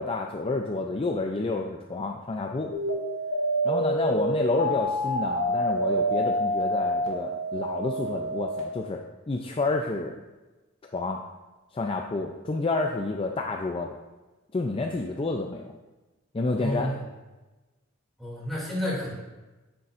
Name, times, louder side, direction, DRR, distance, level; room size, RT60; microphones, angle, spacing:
voice 1, 0.0-2.7 3.6-9.0 9.3-10.2 10.9-11.2 11.7-14.0 14.5-15.7 16.3-16.9, left 3 dB, 25° left, 2 dB, 0.4 m, -29 dB
sound 1, 2.7-8.6, right 1 dB, 70° left, 2.2 m, -27 dB
voice 2, 16.6-17.0 18.2-19.1, equal, ahead, -7 dB, 2.5 m, -30 dB
9.6 x 6.9 x 2.5 m, 1.1 s
head